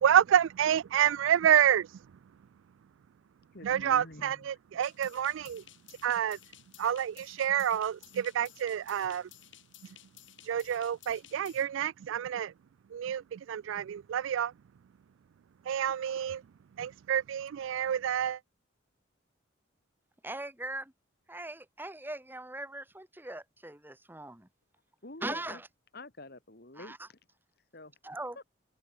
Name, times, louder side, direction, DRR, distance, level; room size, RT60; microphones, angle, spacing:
voice 1, 0.0-2.0 3.6-5.6 6.0-6.4 6.8-9.3 10.4-12.5 12.9-14.5 15.7-16.4 16.8-18.4, right 9 dB, 75° right, 0.3 m, -28 dB
voice 2, 3.5-4.6 5.0-5.1 25.0-25.6 25.9-27.2 27.6-28.0 28.4-28.5, left 2 dB, 50° left, 2.7 m, -48 dB
sound 1, 4.8-11.7, left 13 dB, 70° left, 2.8 m, -56 dB
voice 3, 20.2-20.9 21.3-24.5 25.2-25.6 26.8-27.0 28.0-28.4, right 1 dB, 10° right, 1.9 m, -40 dB
head